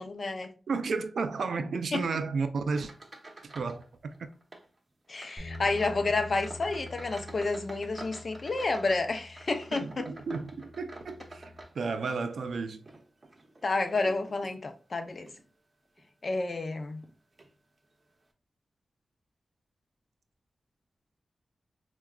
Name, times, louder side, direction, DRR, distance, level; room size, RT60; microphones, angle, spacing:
voice 1, 0.0-0.5 1.9-2.0 5.1-10.1 13.6-15.3 16.2-17.0, left 3 dB, 55° left, 0.5 m, -30 dB
voice 2, 0.7-2.9 3.4-4.3 9.7-12.8, right 4 dB, 85° right, 0.3 m, -33 dB
sound 1, 2.7-3.8 4.1-4.7 5.1-12.2 12.7-14.6 15.2-15.4 16.0-16.1 17.0-17.1 17.4-17.5, right 2 dB, 40° right, 0.7 m, -49 dB
sound 2, 5.4-11.6, left 2 dB, 10° left, 1.4 m, -47 dB
4.6 x 2.2 x 2.3 m
wide cardioid pair, 75°, 0 cm